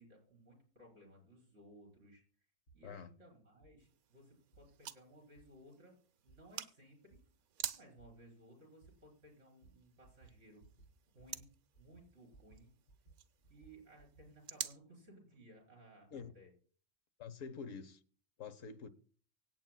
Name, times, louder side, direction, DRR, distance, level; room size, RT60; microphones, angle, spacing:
voice 1, 0.0-2.2 2.7-5.9 6.2-7.2 7.7-10.6 11.1-11.5 11.8-12.7 13.5-16.5, right 1 dB, 60° right, 5.0 m, -60 dB
sound 1, 2.7-2.8 3.6-3.7 4.5-4.6 5.3-5.4 6.3-6.4 7.1-7.2 8.0-8.1 8.8-8.9 9.6-9.7 10.0-10.3 10.6-10.9 11.2-11.5 11.7-12.6 12.9-14.3, right 4 dB, 45° left, 3.3 m, -62 dB
sound 2, 3.8-14.8, right 9 dB, 90° right, 1.3 m, -50 dB
voice 2, 17.2-18.0 18.4-18.9, left 6 dB, 65° left, 1.3 m, -47 dB
24.5 x 8.7 x 2.3 m
omnidirectional pair, 1.5 m